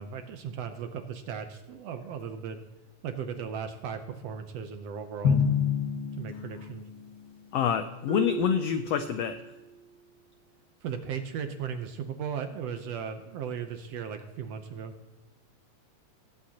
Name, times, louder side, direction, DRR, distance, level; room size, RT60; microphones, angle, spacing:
voice 1, 0.0-2.6 3.0-5.4 6.1-6.8 10.8-14.9, right 7 dB, 70° right, 7 dB, 1.6 m, -36 dB
Drum, 5.2-7.4, left 6 dB, 60° left, 1.1 m, -28 dB
voice 2, 7.5-9.4, left 9 dB, 85° left, 9 dB, 1.4 m, -27 dB
Marimba xylophone, 8.1-9.8, right 5 dB, 5° right, 1.0 m, -36 dB
20.5 x 8.7 x 2.9 m, 1.1 s
omnidirectional pair, 3.5 m